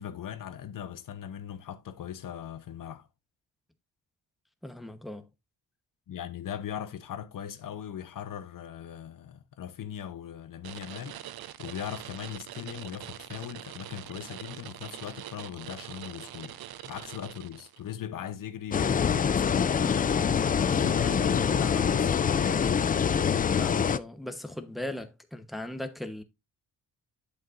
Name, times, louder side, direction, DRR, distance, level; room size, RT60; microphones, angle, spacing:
voice 1, 0.0-3.1 6.1-11.2 11.6-16.6 16.8-22.9, left 9 dB, 60° left, 0.9 m, -39 dB
voice 2, 4.6-5.3 23.6-26.2, left 1 dB, ahead, 1.0 m, -38 dB
sound 1, 10.6-17.9, right 12 dB, 75° right, 0.7 m, -43 dB
sound 2, 18.7-24.0, left 7 dB, 25° left, 0.3 m, -25 dB
8.7 x 7.6 x 2.6 m
cardioid pair, 95°, 37 cm